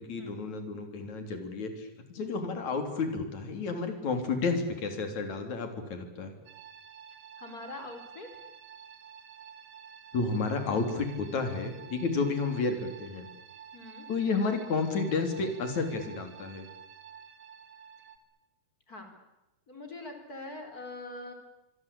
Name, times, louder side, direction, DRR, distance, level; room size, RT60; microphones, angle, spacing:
voice 1, 0.0-6.3 10.1-13.3 14.1-16.7, left 4 dB, 50° left, 6 dB, 4.6 m, -31 dB
sound 1, 6.5-18.2, right 7 dB, 55° right, 3.6 m, -50 dB
voice 2, 7.4-8.3 13.7-14.1 18.9-19.2 19.7-21.3, left 2 dB, 25° left, 6 dB, 4.2 m, -43 dB
25.0 x 24.0 x 8.6 m, 0.97 s
omnidirectional pair, 4.4 m